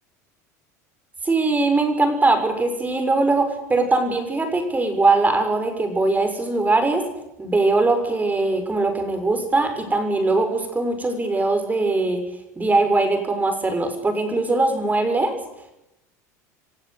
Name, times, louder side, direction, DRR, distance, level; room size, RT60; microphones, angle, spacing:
voice 1, 1.2-7.0 7.4-12.2 12.6-15.3, right 3 dB, 15° right, 6 dB, 6.6 m, -21 dB
28.5 x 15.5 x 8.3 m, 0.86 s
hypercardioid pair, 85°, 9 cm